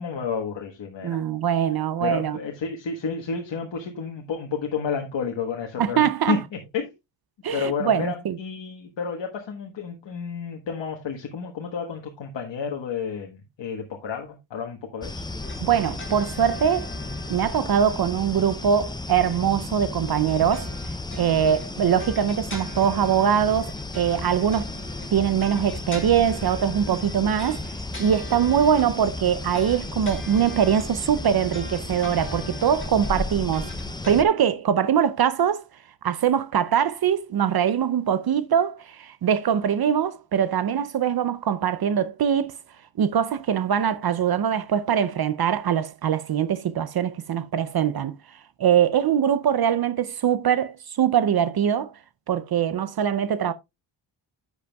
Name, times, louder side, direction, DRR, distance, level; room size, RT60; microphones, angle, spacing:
voice 1, 0.0-1.2 2.0-6.9 7.5-15.3, left 6 dB, 70° left, 1.4 m, -31 dB
voice 2, 1.0-2.4 5.8-6.4 7.4-8.4 15.6-16.9 17.3-20.7 21.2-24.7 25.1-27.7 28.0-33.7 34.1-35.6 36.0-42.6 43.0-48.2 48.6-51.9 52.3-53.5, right 8 dB, 55° right, 0.6 m, -22 dB
sound 1, 15.0-34.2, left 2 dB, 10° left, 0.5 m, -34 dB
sound 2, 15.4-19.1 20.4-34.2, left 1 dB, 25° left, 3.0 m, -44 dB
10.5 x 8.1 x 2.3 m
wide cardioid pair, 135°, 45 cm